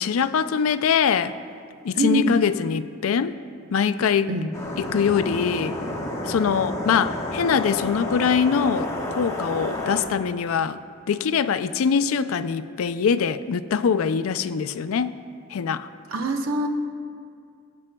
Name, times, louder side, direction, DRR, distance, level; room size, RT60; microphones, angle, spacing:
voice 1, 0.0-1.3 1.8-3.4 3.7-4.3 4.8-5.8 6.3-10.8 11.1-15.1 15.5-15.9, left 6 dB, 85° left, 12 dB, 0.4 m, -23 dB
voice 2, 1.9-2.4 4.3-4.5 16.1-16.7, right 2 dB, 80° right, 4 dB, 0.9 m, -23 dB
sound 1, 4.5-10.0, left 1 dB, 15° left, 1.1 m, -30 dB
22.5 x 8.5 x 2.2 m, 2.3 s
head